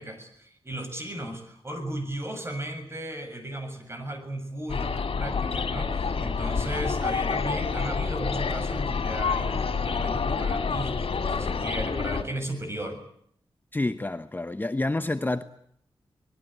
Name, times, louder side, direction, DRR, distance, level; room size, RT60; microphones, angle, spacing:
voice 1, 0.0-13.0, right 1 dB, 25° right, 7.3 m, -36 dB
sound 1, 4.7-12.2, left 5 dB, 75° left, 3.9 m, -28 dB
voice 2, 13.7-15.4, left 2 dB, 20° left, 1.0 m, -28 dB
26.0 x 20.5 x 9.1 m
wide cardioid pair, 100°, 10 cm